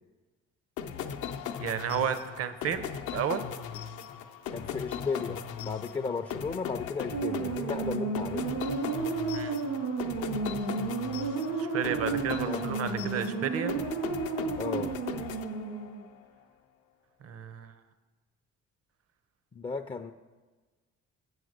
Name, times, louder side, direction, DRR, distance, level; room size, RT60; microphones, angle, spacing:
sound 1, 0.8-16.1, left 8 dB, 80° left, 0.6 m, -38 dB
voice 1, 1.6-3.5 9.3-9.6 11.6-13.7 17.2-17.7, right 8 dB, 50° right, 11 dB, 0.6 m, -32 dB
voice 2, 4.5-8.6 12.4-12.6 14.6-14.9 19.5-20.1, left 4 dB, 20° left, 6 dB, 0.3 m, -35 dB
sound 2, 7.1-16.0, right 4 dB, 85° right, 2.2 m, -32 dB
7.7 x 4.8 x 6.5 m, 1.3 s
cardioid pair, 90°, 30 cm